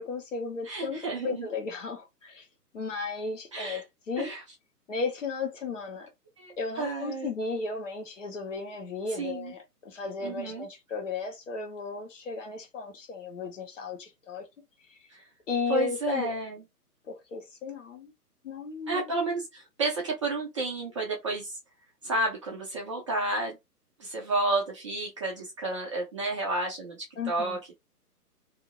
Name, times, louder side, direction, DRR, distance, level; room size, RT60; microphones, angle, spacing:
voice 1, 0.0-2.5 2.7-4.3 4.9-6.1 6.6-14.5 14.9-15.0 15.5-16.4 17.1-18.1 18.4-19.0 27.2-27.6, left 4 dB, 50° left, 1.3 m, -35 dB
voice 2, 0.6-1.5 3.5-3.8 4.2-4.4 6.4-7.3 9.2-9.5 10.2-10.7 15.1-15.3 15.7-16.6 18.9-21.6 22.0-23.6 24.0-27.8, right 2 dB, 20° right, 0.6 m, -31 dB
2.8 x 2.6 x 3.8 m
figure-of-eight pair, 130°, 47 cm